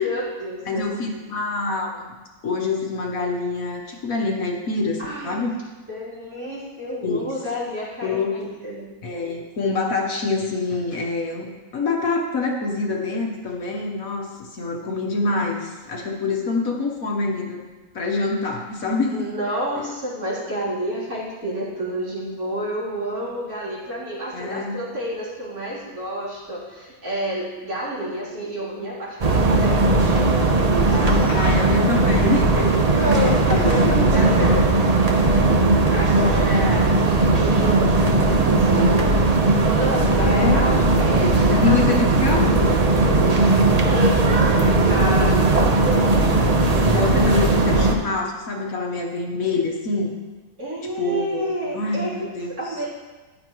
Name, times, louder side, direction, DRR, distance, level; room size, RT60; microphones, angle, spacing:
voice 1, 0.0-0.9 1.1-1.2 5.0-5.4 5.9-8.9 19.1-30.4 30.9-31.3 32.9-39.2 39.6-42.1 43.2-46.3 46.9-47.3 50.6-52.9, equal, 60° right, -8 dB, 4.0 m, -30 dB
voice 2, 0.6-2.1 2.4-5.5 7.0-7.3 8.0-8.4 9.0-17.6 17.9-19.2 24.3-24.8 31.3-32.8 33.1-34.6 40.2-40.6 41.6-42.8 46.2-50.1 51.0-52.5, left 3 dB, 60° left, 1 dB, 1.5 m, -26 dB
sound 1, 29.2-48.0, right 2 dB, 35° right, 0.6 m, -18 dB
14.0 x 10.5 x 3.1 m, 1.3 s
omnidirectional pair, 1.8 m